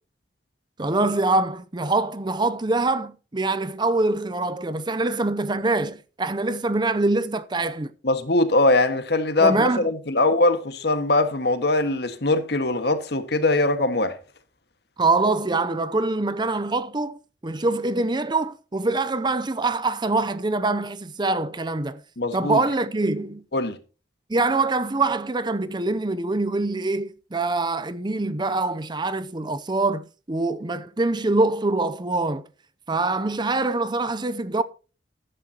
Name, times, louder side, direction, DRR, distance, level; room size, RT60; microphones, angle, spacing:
voice 1, 0.8-7.9 9.4-9.8 15.0-22.0 22.3-23.4 24.3-32.4 32.9-34.6, right 2 dB, 25° right, 0.6 m, -24 dB
voice 2, 8.0-14.2 22.2-22.6 23.5-23.8, left 2 dB, 65° left, 1.7 m, -21 dB
14.0 x 11.0 x 2.9 m
head